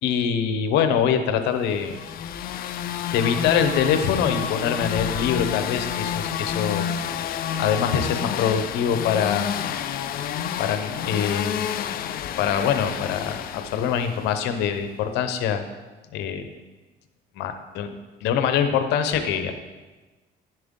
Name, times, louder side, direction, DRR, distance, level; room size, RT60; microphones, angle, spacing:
voice 1, 0.0-2.0 3.1-6.9 7.6-9.5 10.6-11.7 12.4-15.7 16.1-16.5 17.4-18.0 18.2-19.5, left 8 dB, 90° left, 8 dB, 0.8 m, -24 dB
sound 1, 1.7-14.6, left 9 dB, 60° left, 0.5 m, -29 dB
10.5 x 7.6 x 3.7 m, 1.2 s
cardioid pair, 110°, 17 cm